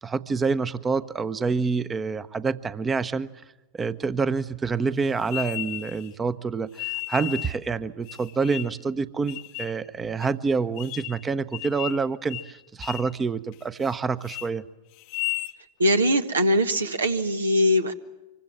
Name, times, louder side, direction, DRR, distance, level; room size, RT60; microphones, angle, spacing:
voice 1, 0.0-3.3 3.7-14.6, right 4 dB, 15° right, 15 dB, 1.0 m, -27 dB
sound 1, 5.3-6.1 6.7-7.6 8.0-8.8 9.3-9.8 10.2-10.3 10.8-11.2 11.5-12.0 12.3-12.5 12.8-13.1 13.5-13.9 14.2-14.5 15.0-15.6, left 20 dB, 45° left, 0.9 m, -34 dB
voice 2, 15.8-17.9, equal, 75° right, 9 dB, 1.4 m, -21 dB
25.5 x 23.5 x 7.4 m, 1.1 s
figure-of-eight pair, 90°, 0 cm